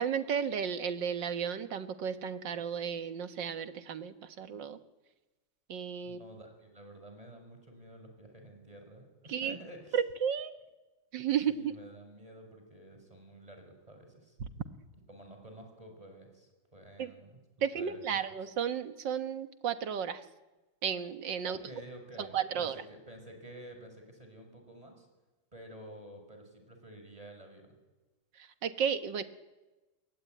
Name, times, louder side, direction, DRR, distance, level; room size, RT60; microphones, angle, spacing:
voice 1, 0.0-4.8 5.7-6.2 9.3-9.6 9.9-10.5 11.1-11.7 14.4-14.5 17.0-17.1 17.6-20.3 20.8-21.6 22.2-22.8 28.3-29.2, right 7 dB, 75° right, 10 dB, 2.0 m, -33 dB
voice 2, 6.0-10.0 11.5-14.4 15.1-17.4 17.7-18.2 21.5-25.1 25.5-27.7, right 1 dB, 20° right, 4 dB, 5.8 m, -51 dB
28.0 x 22.5 x 9.2 m, 1.2 s
omnidirectional pair, 2.0 m